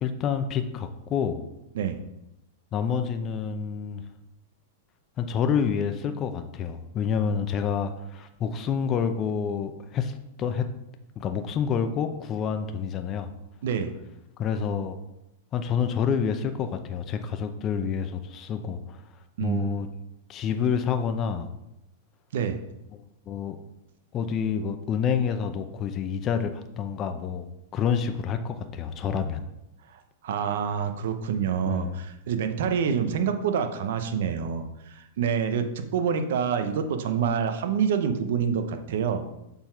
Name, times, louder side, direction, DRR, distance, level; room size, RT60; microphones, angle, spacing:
voice 1, 0.0-1.4 2.7-4.0 5.2-10.6 11.2-13.3 14.4-15.0 15.5-19.0 19.4-19.9 20.3-21.5 23.3-23.6 24.1-27.5 27.7-29.4 31.6-31.9, left 7 dB, 35° left, 7 dB, 0.7 m, -28 dB
voice 2, 19.4-19.7 22.3-22.6 30.2-39.2, right 7 dB, 70° right, 8 dB, 0.8 m, -27 dB
7.0 x 4.0 x 4.5 m, 0.87 s
hypercardioid pair, 120°, 0 cm